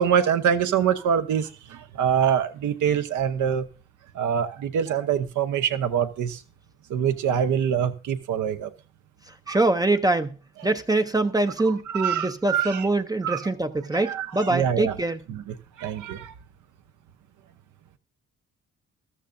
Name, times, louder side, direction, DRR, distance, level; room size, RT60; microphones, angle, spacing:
voice 1, 0.0-3.6 4.1-6.4 6.9-8.7 9.5-9.6 11.9-12.9 13.2-13.5 13.9-14.9 15.3-16.3, right 8 dB, 75° right, 1.0 m, -25 dB
voice 2, 9.5-10.3 10.6-15.2, right 2 dB, 15° right, 0.6 m, -24 dB
14.0 x 12.5 x 2.6 m
cardioid pair, 90°, 30 cm